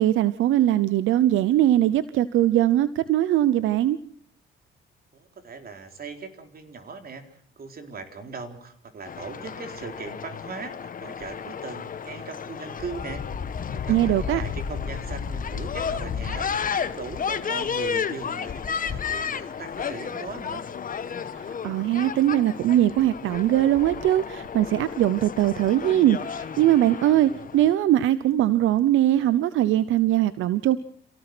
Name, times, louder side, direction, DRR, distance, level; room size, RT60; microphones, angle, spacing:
voice 1, 0.0-4.0 13.9-14.4 21.3-30.8, right 13 dB, 85° right, 15 dB, 0.8 m, -21 dB
voice 2, 5.2-7.2 7.6-13.2 13.7-16.5 16.7-20.6, right 4 dB, 50° right, 6 dB, 4.2 m, -39 dB
sound 1, 9.0-27.8, left 6 dB, 45° left, 1.4 m, -32 dB
28.0 x 17.5 x 6.2 m, 0.63 s
cardioid pair, 90°, 20 cm